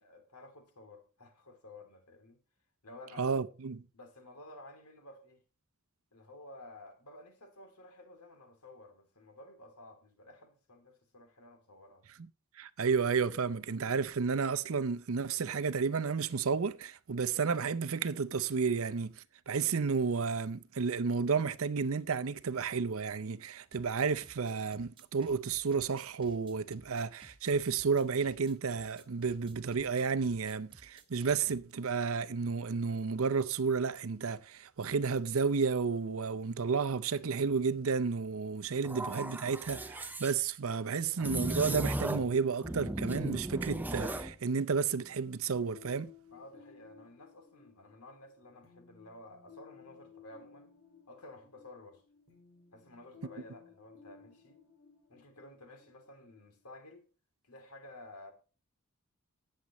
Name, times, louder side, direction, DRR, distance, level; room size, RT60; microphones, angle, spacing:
voice 1, 0.0-2.4 2.8-3.3 3.9-5.4 6.1-12.0 46.3-50.7 51.1-52.0 52.7-54.6 55.1-57.0 57.4-58.3, left 2 dB, 85° left, 3.0 m, -53 dB
voice 2, 3.2-3.8 12.6-46.1, right 5 dB, 65° right, 0.6 m, -32 dB
sound 1, 23.7-31.7, right 2 dB, 25° right, 1.4 m, -57 dB
sound 2, 38.8-40.3 41.2-42.3 42.6-44.3, right 1 dB, 10° right, 0.6 m, -36 dB
sound 3, 44.3-56.7, left 7 dB, 70° left, 5.0 m, -59 dB
18.0 x 7.6 x 3.1 m
head